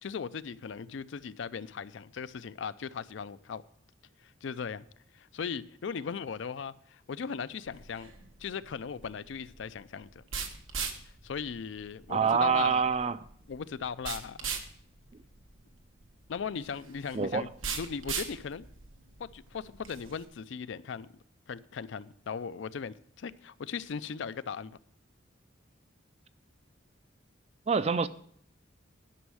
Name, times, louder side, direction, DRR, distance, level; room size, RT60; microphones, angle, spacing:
voice 1, 0.0-3.6 4.2-4.9 5.1-8.1 8.4-10.2 11.2-12.8 13.5-14.5 16.3-17.5 17.7-18.6 19.2-21.1 21.5-24.8, left 6 dB, 65° left, 0.4 m, -38 dB
sound 1, 7.7-20.2, right 6 dB, 90° right, 1.3 m, -41 dB
voice 2, 12.1-13.2 17.1-17.5 27.7-28.1, right 6 dB, 30° right, 0.4 m, -26 dB
11.5 x 6.3 x 6.2 m
head